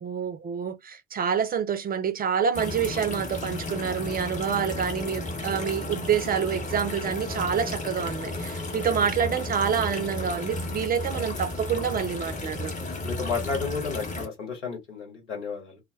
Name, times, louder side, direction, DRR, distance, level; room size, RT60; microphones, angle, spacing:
voice 1, 0.0-12.7, right 7 dB, 25° right, 0.4 m, -27 dB
sound 1, 2.5-14.3, left 2 dB, 20° left, 0.8 m, -33 dB
voice 2, 12.8-15.8, left 5 dB, 85° left, 0.8 m, -32 dB
2.2 x 2.1 x 3.2 m
figure-of-eight pair, 45°, 35 cm